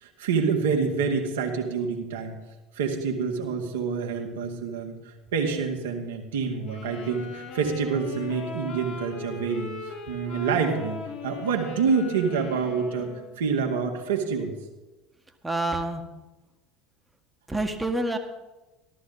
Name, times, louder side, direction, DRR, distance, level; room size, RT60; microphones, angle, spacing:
voice 1, 0.0-2.4 2.7-4.9 5.3-9.7 10.1-13.1 13.4-14.5, right 5 dB, 70° right, 2 dB, 1.8 m, -27 dB
sound 1, 6.6-13.4, left 4 dB, 55° left, 2.6 m, -39 dB
voice 2, 15.4-16.0 17.5-18.2, right 2 dB, 10° right, 5 dB, 1.6 m, -27 dB
14.0 x 13.5 x 3.9 m, 1.1 s
figure-of-eight pair, 70°, 0 cm